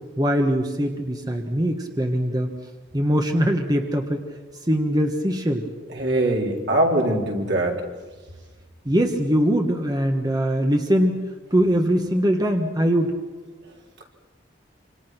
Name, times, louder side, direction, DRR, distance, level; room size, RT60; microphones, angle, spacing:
voice 1, 0.2-2.5 2.9-4.2 4.7-5.7 8.8-11.2 11.5-13.1, equal, 20° right, 4 dB, 1.4 m, -22 dB
voice 2, 5.9-7.8, right 1 dB, 70° right, 0 dB, 4.1 m, -22 dB
27.0 x 26.0 x 6.0 m, 1.3 s
head